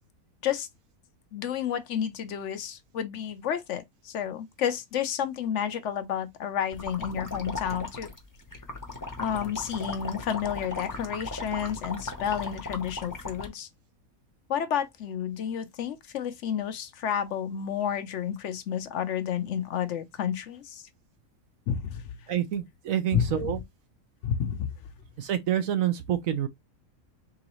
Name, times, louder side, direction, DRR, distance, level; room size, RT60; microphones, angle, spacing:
voice 1, 1.3-8.1 9.2-13.7 14.5-20.8 21.7-22.0 23.1-23.6 24.2-24.7, left 9 dB, 65° left, 0.9 m, -31 dB
sound 1, 6.7-13.5, left 3 dB, 15° left, 0.7 m, -37 dB
voice 2, 22.3-23.6 25.2-26.5, right 11 dB, 70° right, 1.0 m, -27 dB
3.9 x 3.8 x 3.0 m
omnidirectional pair, 1.5 m